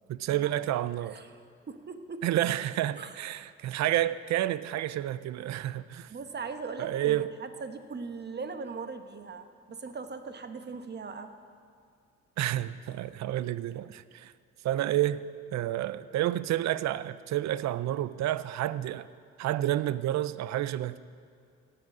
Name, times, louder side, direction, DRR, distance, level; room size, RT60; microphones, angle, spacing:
voice 1, 0.1-1.2 2.2-6.1 6.8-7.3 12.4-14.3 14.6-15.2 15.5-19.1 19.4-21.0, right 13 dB, 65° right, 0.5 m, -30 dB
voice 2, 1.1-2.2 3.0-3.1 6.1-11.3, right 4 dB, 35° right, 1.1 m, -40 dB
17.5 x 7.8 x 6.1 m
cardioid pair, 90°, 30 cm